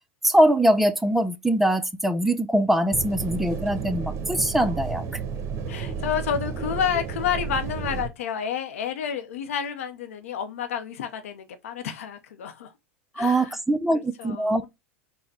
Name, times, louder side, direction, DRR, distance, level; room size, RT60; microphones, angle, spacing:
voice 1, 0.2-5.1 13.2-14.6, right 1 dB, 5° right, 0.4 m, -22 dB
sound 1, 2.9-8.1, right 6 dB, 40° right, 0.8 m, -32 dB
voice 2, 5.7-12.7 13.1-13.6 14.2-14.7, left 8 dB, 75° left, 0.6 m, -30 dB
4.2 x 2.1 x 4.1 m
hypercardioid pair, 90°, 8 cm